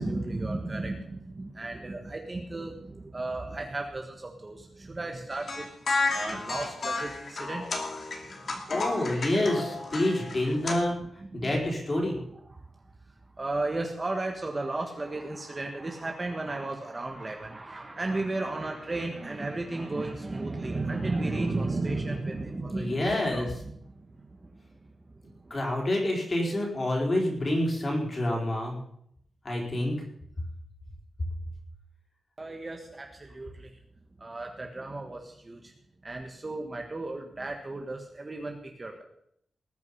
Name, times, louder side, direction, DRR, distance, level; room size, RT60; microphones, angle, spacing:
voice 1, 0.0-5.7 6.1-7.7 8.2-8.6 11.2-11.6 12.5-12.6 13.4-24.6 25.2-25.6 32.4-33.7 34.2-35.7 36.0-39.0, right 2 dB, 20° right, 2 dB, 1.5 m, -34 dB
sound 1, 5.3-10.7, left 3 dB, 45° left, 2.5 m, -32 dB
voice 2, 8.7-11.0 11.3-12.2 22.7-23.5 25.5-28.8 29.4-29.9, left 1 dB, 25° left, -1 dB, 4.5 m, -27 dB
19.5 x 9.3 x 5.6 m, 0.72 s
wide cardioid pair, 180°, 0 cm